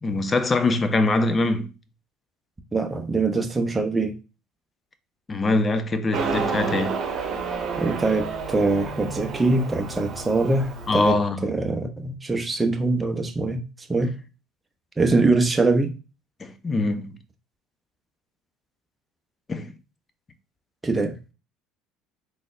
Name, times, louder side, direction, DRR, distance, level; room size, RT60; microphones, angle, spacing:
voice 1, 0.0-1.7 5.3-7.0 10.9-11.5 16.4-17.1 19.5-19.7, left 2 dB, 25° left, 0.6 m, -23 dB
voice 2, 2.7-4.2 7.8-14.2 15.0-16.0 20.8-21.2, right 3 dB, 15° right, 0.9 m, -23 dB
Motorcycle, 6.1-11.1, right 5 dB, 45° right, 1.4 m, -30 dB
3.9 x 3.2 x 2.6 m
hypercardioid pair, 65°, 0 cm